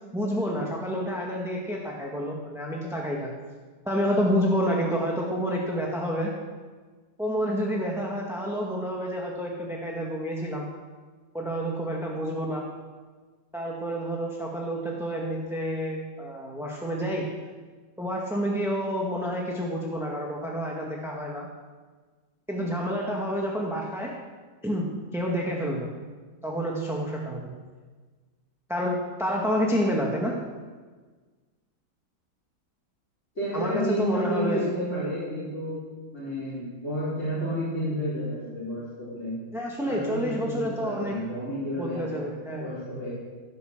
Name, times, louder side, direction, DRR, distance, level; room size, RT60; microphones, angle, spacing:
voice 1, 0.1-3.3 3.8-6.3 7.2-10.7 11.3-12.6 13.5-17.3 18.0-21.5 22.5-24.1 24.6-25.9 26.4-27.5 28.7-30.3 33.5-34.6 39.5-41.2 41.8-42.7, equal, ahead, -2 dB, 1.6 m, -29 dB
voice 2, 33.3-35.8 36.1-39.3 39.8-42.2 42.6-43.1, equal, 35° left, -9 dB, 4.8 m, -31 dB
16.0 x 9.5 x 6.7 m, 1.4 s
omnidirectional pair, 1.9 m